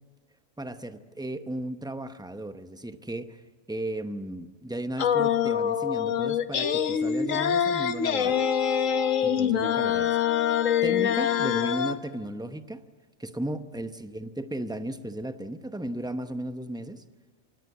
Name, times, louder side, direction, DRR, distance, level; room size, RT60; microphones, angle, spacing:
voice 1, 0.6-3.4 3.7-8.4 9.2-10.2 10.4-12.8 13.2-17.0, right 1 dB, 5° right, 9 dB, 0.7 m, -35 dB
sound 1, 5.0-12.0, left 8 dB, 70° left, 1.4 m, -25 dB
26.5 x 18.5 x 8.3 m, 1.4 s
omnidirectional pair, 1.4 m